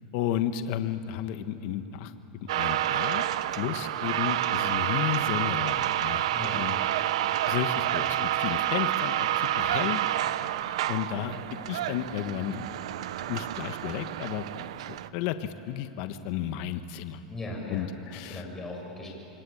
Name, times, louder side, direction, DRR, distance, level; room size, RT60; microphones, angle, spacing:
voice 1, 0.1-3.2 3.5-6.3 6.6-6.8 7.5-10.0 10.9-11.4 11.7-12.7 13.3-17.2 17.7-18.4, left 10 dB, 55° left, 9 dB, 1.5 m, -33 dB
sound 1, 2.5-15.1, right 12 dB, 80° right, 0.8 m, -29 dB
voice 2, 6.3-6.6 17.3-19.1, left 2 dB, 10° left, -1 dB, 6.6 m, -38 dB
27.5 x 24.0 x 8.7 m, 2.9 s
supercardioid pair, 135°, 3 cm